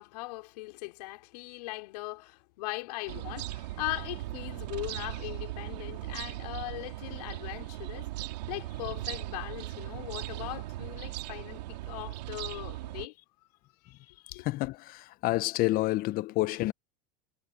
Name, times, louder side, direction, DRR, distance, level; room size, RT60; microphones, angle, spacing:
voice 1, 0.0-13.1 13.8-13.9 14.3-14.4, left 22 dB, 70° left, 4.7 m, -40 dB
sound 1, 3.1-13.1, right 17 dB, 80° right, 3.0 m, -38 dB
voice 2, 14.3-16.7, left 18 dB, 45° left, 1.0 m, -29 dB
supercardioid pair, 115°, 21 cm